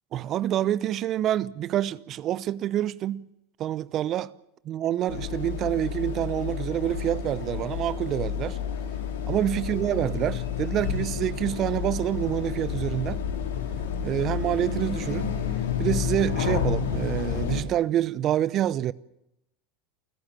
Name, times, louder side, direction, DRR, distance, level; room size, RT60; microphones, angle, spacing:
voice 1, 0.1-3.3 3.6-4.3 4.6-8.6 9.3-13.2 14.0-15.4 15.8-18.9, right 12 dB, 45° right, 0.8 m, -27 dB
sound 1, 5.1-17.6, left 8 dB, 80° left, 4.5 m, -30 dB
29.5 x 15.0 x 7.4 m
hypercardioid pair, 85°, 0 cm